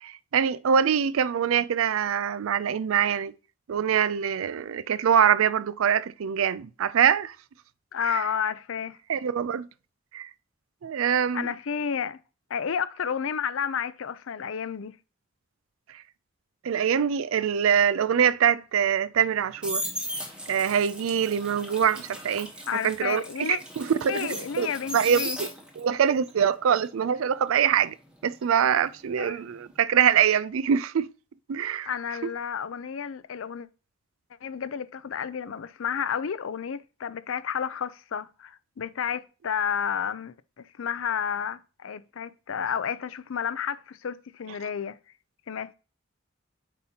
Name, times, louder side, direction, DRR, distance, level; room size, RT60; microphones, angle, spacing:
voice 1, 0.0-3.3 3.7-7.4 8.1-8.2 9.1-9.7 10.1-10.3 10.8-11.5 16.6-19.8 20.5-22.5 22.8-23.5 23.8-24.7 24.9-25.5 25.8-27.9 28.2-31.1 31.5-31.9 32.2-32.3, right 8 dB, 80° right, 0.4 m, -24 dB
voice 2, 7.9-9.0 11.3-12.2 12.5-15.0 22.7-23.6 24.1-25.4 29.2-29.4 31.8-33.7 34.4-45.0 45.5-45.7, left 7 dB, 75° left, 0.5 m, -31 dB
sound 1, 19.2-25.9 26.3-29.2 29.4-29.8, equal, 5° right, 1.0 m, -37 dB
8.9 x 4.2 x 2.8 m
head